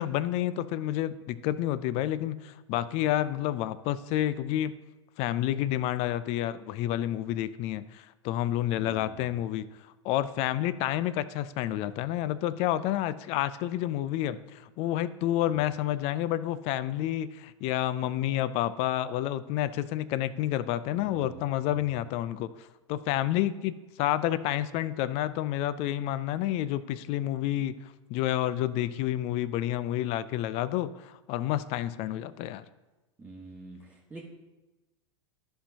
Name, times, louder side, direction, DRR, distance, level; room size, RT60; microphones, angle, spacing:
voice 1, 0.0-4.7 5.2-9.7 10.0-32.6, left 13 dB, 40° left, 16 dB, 0.4 m, -29 dB
voice 2, 8.7-9.4 15.5-15.6 20.9-21.8 33.2-34.2, right 2 dB, 10° right, -5 dB, 1.3 m, -48 dB
13.5 x 5.7 x 2.8 m, 1.1 s
figure-of-eight pair, 90°, 16 cm